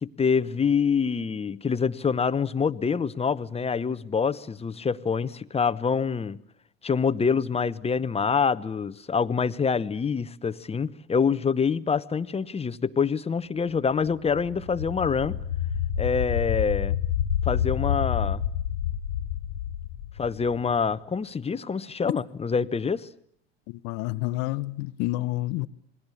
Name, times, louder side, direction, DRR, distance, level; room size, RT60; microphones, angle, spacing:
voice 1, 0.0-6.4 6.8-15.4 16.0-17.0 17.5-18.4 20.2-23.1, left 6 dB, 20° left, 1.0 m, -26 dB
sound 1, 14.1-20.9, left 9 dB, 75° left, 1.9 m, -28 dB
voice 2, 23.7-25.7, left 18 dB, 55° left, 1.0 m, -29 dB
28.5 x 21.0 x 8.5 m
hypercardioid pair, 80°, 33 cm